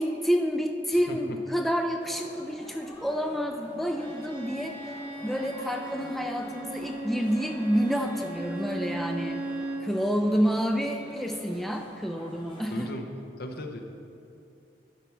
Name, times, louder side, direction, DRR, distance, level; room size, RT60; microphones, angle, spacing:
voice 1, 0.0-4.8 5.2-9.4 9.8-12.9, equal, ahead, 3 dB, 0.3 m, -28 dB
voice 2, 0.9-1.4 12.7-13.1 13.4-13.8, left 1 dB, 60° left, 3 dB, 0.8 m, -37 dB
sound 1, 2.0-12.9, equal, 25° left, 1.7 m, -47 dB
Bowed string instrument, 3.8-9.9, right 1 dB, 35° right, 2.0 m, -37 dB
10.5 x 5.7 x 4.6 m, 2.6 s
head